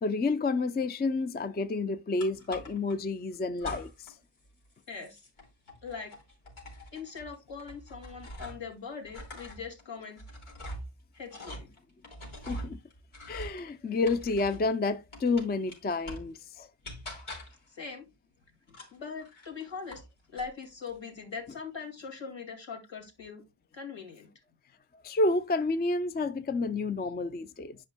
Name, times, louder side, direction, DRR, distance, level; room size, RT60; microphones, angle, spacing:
voice 1, 0.0-4.1 12.5-12.8 13.3-16.7 25.0-27.8, left 3 dB, 20° left, 0.4 m, -30 dB
sound 1, 2.2-3.0 3.6-4.2 4.4-8.7 9.0-14.7 15.1-16.4 16.8-17.7 18.7-20.1 20.4-21.0, equal, 85° left, 4.0 m, -44 dB
voice 2, 4.9-5.2 5.8-6.1 6.9-10.2 11.1-11.7 17.7-18.1 18.7-20.0 20.3-23.4 23.7-24.3, left 5 dB, 65° left, 2.3 m, -41 dB
10.5 x 5.4 x 2.2 m
wide cardioid pair, 95°, 48 cm